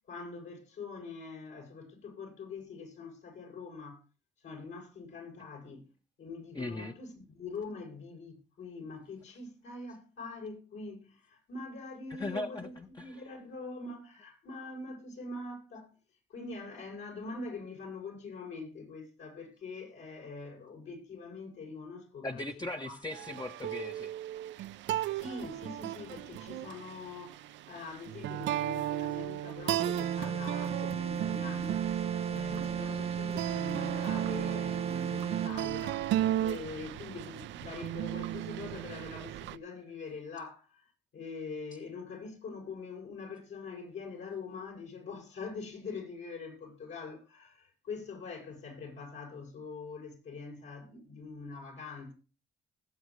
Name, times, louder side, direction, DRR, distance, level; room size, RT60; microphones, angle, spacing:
voice 1, 0.1-4.0 4.4-5.9 6.2-15.9 16.3-22.5 22.8-22.9 25.1-31.8 32.3-36.1 36.4-52.1, left 4 dB, 75° left, 6.9 m, -44 dB
voice 2, 6.5-6.9 12.1-13.3 22.2-24.1 41.7-41.8, left 2 dB, 20° left, 0.9 m, -39 dB
sound 1, 23.1-39.6, right 13 dB, 75° right, 0.5 m, -35 dB
sound 2, 29.8-35.6, right 7 dB, 35° right, 0.8 m, -35 dB
20.0 x 7.9 x 3.2 m
supercardioid pair, 70°, 19 cm